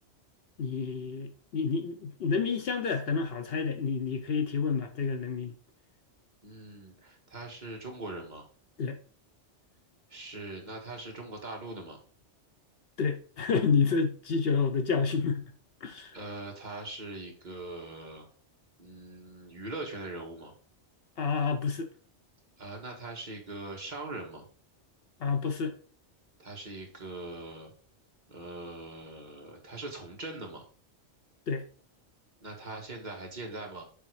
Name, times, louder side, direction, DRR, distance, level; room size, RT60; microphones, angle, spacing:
voice 1, 0.6-5.5 8.8-9.0 13.0-15.5 15.8-16.2 21.2-21.9 25.2-25.7 31.5-31.7, left 5 dB, 60° left, 0.9 m, -29 dB
voice 2, 6.4-8.4 10.1-12.0 16.1-18.2 18.8-20.5 22.6-24.4 26.4-27.7 28.3-30.6 32.4-33.8, right 2 dB, 40° right, 1.8 m, -41 dB
6.9 x 3.8 x 4.7 m
omnidirectional pair, 1.2 m